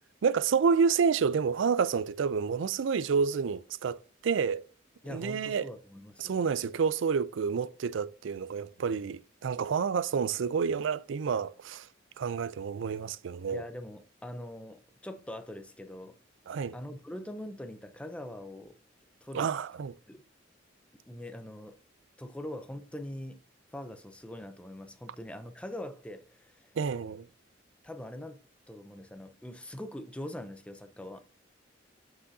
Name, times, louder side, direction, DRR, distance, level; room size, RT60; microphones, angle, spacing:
voice 1, 0.2-4.6 5.1-5.7 6.2-11.9 12.2-13.6 16.5-16.8 19.3-19.9 26.8-27.3, right 6 dB, 75° right, 0.4 m, -29 dB
voice 2, 5.0-6.4 13.5-16.2 16.7-18.8 19.2-19.5 20.1-20.2 21.1-21.8 22.2-23.4 23.7-26.7 27.8-28.4 28.7-31.2, left 1 dB, 5° left, 0.5 m, -42 dB
8.2 x 5.9 x 2.7 m
head